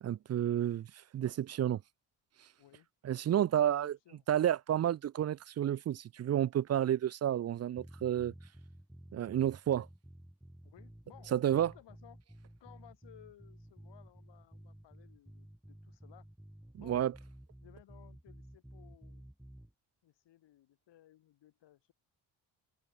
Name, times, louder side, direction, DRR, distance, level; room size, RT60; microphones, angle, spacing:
voice 1, 0.0-0.9 1.1-1.8 3.0-4.0 4.3-8.3 9.1-9.9 11.3-11.7 16.8-17.1, right 11 dB, 40° right, 0.4 m, -30 dB
voice 2, 2.6-2.9 3.6-4.2 10.6-12.2 12.6-16.3 16.8-17.0 17.6-19.3 20.0-21.9, left 13 dB, 80° left, 4.5 m, -60 dB
sound 1, 7.8-19.7, right 1 dB, 5° right, 1.7 m, -53 dB
cardioid pair, 135°, 42 cm